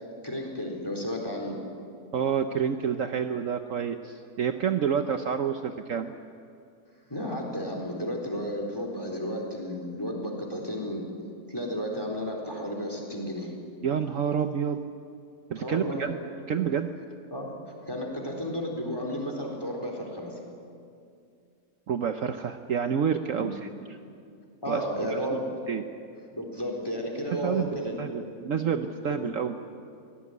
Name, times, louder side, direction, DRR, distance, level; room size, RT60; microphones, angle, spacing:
voice 1, 0.2-1.6 7.1-11.0 11.5-13.5 15.6-16.1 17.3-17.5 17.9-20.3 23.3-23.5 24.6-25.5 26.3-28.3 28.7-28.8 29.1-29.2, equal, 15° left, 1 dB, 4.1 m, -33 dB
voice 2, 2.1-6.1 13.8-14.8 15.5-16.2 16.5-16.9 21.9-23.7 24.7-25.4 25.7-25.8 27.3-29.6, right 7 dB, 60° right, 7 dB, 1.1 m, -28 dB
24.0 x 17.5 x 9.4 m, 2.4 s
omnidirectional pair, 1.7 m